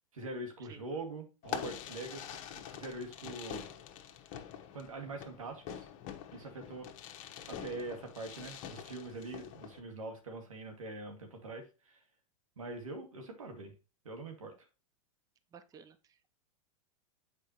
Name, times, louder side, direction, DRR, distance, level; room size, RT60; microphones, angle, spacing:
voice 1, 0.1-2.3 2.5-3.7 4.7-5.9 6.3-6.9 7.5-12.0 12.6-13.7 14.0-14.5, right 2 dB, 90° right, 2.1 m, -43 dB
Fireworks, 1.4-9.8, left 9 dB, 45° left, 1.1 m, -45 dB
voice 2, 15.5-16.3, right 7 dB, 20° right, 0.7 m, -55 dB
7.9 x 4.9 x 3.0 m
hypercardioid pair, 110°, 17 cm